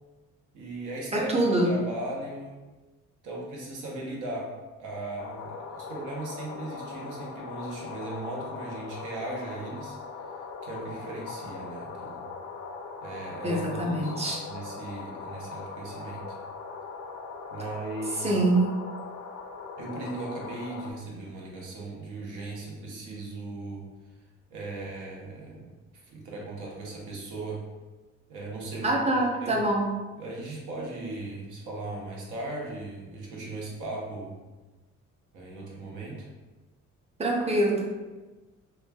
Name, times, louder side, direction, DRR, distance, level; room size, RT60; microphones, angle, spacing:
voice 1, 0.5-2.6 3.2-4.5 4.8-10.0 10.6-12.2 13.0-14.2 14.5-16.4 17.5-18.4 19.8-23.8 24.5-25.7 26.0-27.6 28.3-29.0 29.4-29.6 30.2-34.4 35.3-36.3, right 2 dB, 80° right, -3 dB, 0.8 m, -38 dB
voice 2, 1.1-1.8 13.4-14.5 18.2-18.7 28.8-29.9 37.2-37.8, right 1 dB, 20° right, -1 dB, 0.5 m, -25 dB
sound 1, 5.2-20.9, left 4 dB, 70° left, 0.5 m, -40 dB
3.1 x 2.2 x 2.2 m, 1.2 s
cardioid pair, 90°, 30 cm